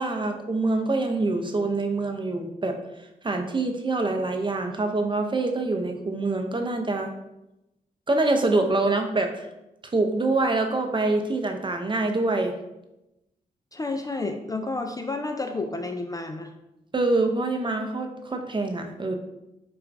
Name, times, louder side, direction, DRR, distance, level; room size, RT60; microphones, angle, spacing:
voice 1, 0.0-2.8 3.2-7.1 8.1-9.5 9.9-12.5 16.9-19.2, right 2 dB, 30° right, 5 dB, 0.5 m, -25 dB
voice 2, 13.7-16.5, left 3 dB, 20° left, 5 dB, 0.3 m, -30 dB
4.4 x 2.3 x 2.5 m, 0.92 s
supercardioid pair, 40°, 17 cm